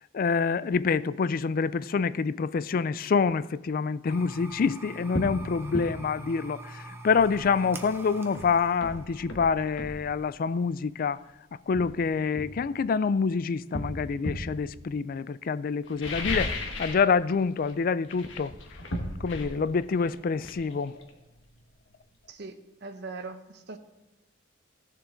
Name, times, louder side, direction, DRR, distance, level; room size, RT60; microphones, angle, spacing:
voice 1, 0.0-11.2 11.7-18.5 19.2-21.0, left 5 dB, 50° left, 0.4 m, -27 dB
sound 1, 4.1-10.7, right 2 dB, 15° right, 0.9 m, -45 dB
sound 2, 4.5-4.6 5.1-5.4 5.7-5.9 7.8-7.9 8.3-10.0 11.1-11.2 11.7-13.1 13.7-14.5 15.8-17.1 17.4-17.7 18.0-21.6 21.9-22.0, left 1 dB, 85° left, 1.6 m, -35 dB
voice 2, 22.8-23.8, right 3 dB, 60° right, 0.8 m, -40 dB
16.0 x 7.2 x 3.9 m
head